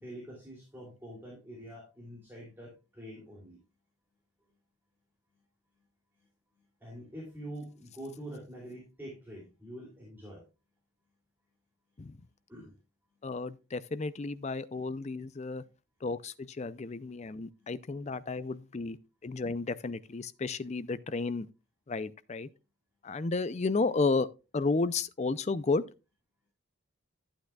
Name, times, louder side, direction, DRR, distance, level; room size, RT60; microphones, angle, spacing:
voice 1, 0.0-3.6 6.8-10.4 12.5-12.7 17.6-17.7, right 1 dB, 10° right, 2.7 m, -45 dB
voice 2, 13.2-15.6 16.0-19.0 19.2-21.5 21.9-22.5 23.0-24.3 24.5-25.8, left 3 dB, 30° left, 0.4 m, -32 dB
12.0 x 8.8 x 2.3 m
head